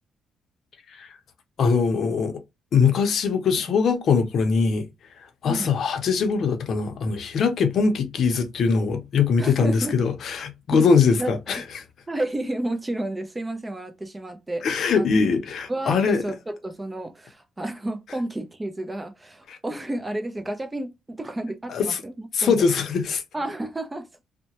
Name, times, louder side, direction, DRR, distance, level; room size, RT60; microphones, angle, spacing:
voice 1, 1.6-2.4 2.7-4.9 5.2-11.8 14.6-16.2 19.5-19.6 21.7-22.0 22.3-23.2, left 5 dB, 65° left, 0.6 m, -22 dB
voice 2, 9.4-10.0 10.7-10.9 11.2-11.6 12.1-15.3 15.7-22.5 23.3-24.1, right 1 dB, 15° right, 0.5 m, -31 dB
2.8 x 2.1 x 2.9 m
cardioid pair, 90°, 0 cm